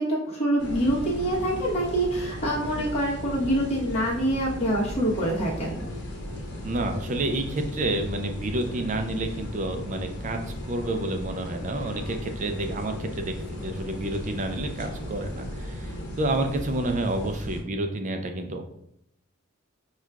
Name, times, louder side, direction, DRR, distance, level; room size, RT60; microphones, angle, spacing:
voice 1, 0.0-5.8, right 1 dB, 30° left, -5 dB, 1.0 m, -25 dB
sound 1, 0.5-16.2, left 2 dB, ahead, 1.0 m, -45 dB
sound 2, 0.6-17.6, equal, 55° left, 1.1 m, -37 dB
voice 2, 6.6-10.4 10.7-18.6, right 2 dB, 35° right, 5 dB, 0.4 m, -29 dB
6.2 x 2.4 x 2.3 m, 0.77 s
head